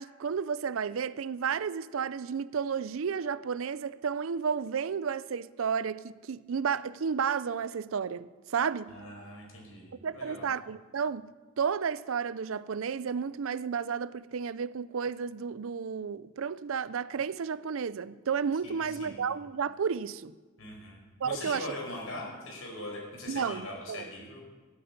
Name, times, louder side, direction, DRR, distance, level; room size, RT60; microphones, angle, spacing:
voice 1, 0.0-9.0 10.0-11.3 11.6-20.4 21.2-21.7 23.3-24.1, right 6 dB, 80° right, 0.5 m, -32 dB
voice 2, 8.9-10.5 18.6-19.2 20.6-24.4, left 1 dB, 85° left, 5.0 m, -41 dB
14.0 x 8.8 x 9.5 m
head